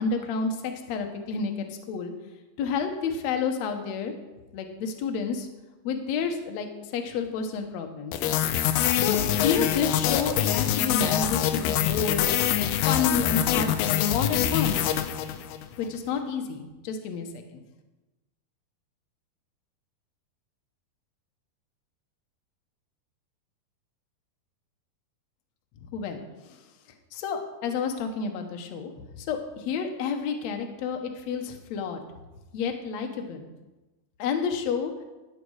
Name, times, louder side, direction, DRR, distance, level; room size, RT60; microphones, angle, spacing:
voice 1, 0.0-2.1 2.6-4.1 4.5-5.5 5.8-8.1 8.9-12.3 12.8-14.9 15.8-17.6 25.9-26.2 26.5-26.6 27.1-32.0 32.5-33.5 34.2-34.9, left 5 dB, 65° left, 5 dB, 1.9 m, -30 dB
sound 1, 8.1-15.7, left 11 dB, 85° left, 2.7 m, -25 dB
14.0 x 9.0 x 4.8 m, 1.1 s
omnidirectional pair, 4.4 m